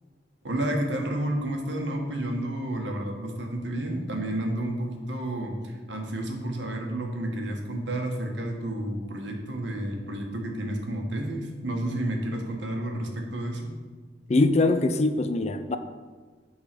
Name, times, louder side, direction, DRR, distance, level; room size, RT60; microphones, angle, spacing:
voice 1, 0.4-13.7, right 1 dB, 85° right, 1.4 m, -31 dB
voice 2, 14.3-15.8, left 2 dB, 35° left, 0.5 m, -22 dB
8.8 x 4.0 x 6.7 m
head